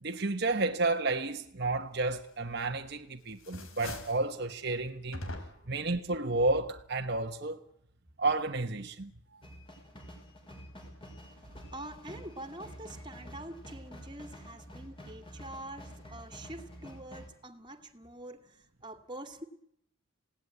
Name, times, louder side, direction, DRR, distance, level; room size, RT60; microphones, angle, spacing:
voice 1, 0.0-5.2 5.7-7.6 8.2-9.1, right 2 dB, 50° right, 1.2 m, -31 dB
sound 1, 2.5-3.0 3.3-4.3 5.1-5.8, left 1 dB, 75° left, 4.4 m, -42 dB
sound 2, 9.4-17.3, equal, 25° left, 6.4 m, -48 dB
voice 2, 11.7-19.4, right 1 dB, 20° right, 2.5 m, -45 dB
27.0 x 18.0 x 9.7 m
head